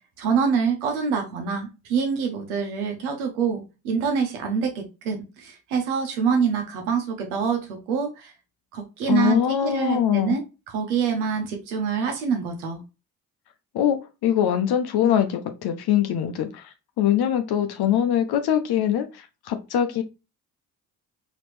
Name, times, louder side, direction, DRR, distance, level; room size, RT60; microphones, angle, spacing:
voice 1, 0.2-8.3 8.7-12.8, right 6 dB, 85° right, 1.1 m, -26 dB
voice 2, 9.1-10.4 13.7-14.0 14.2-20.0, left 10 dB, 60° left, 0.8 m, -23 dB
4.2 x 3.1 x 3.1 m
hypercardioid pair, 45°, 44 cm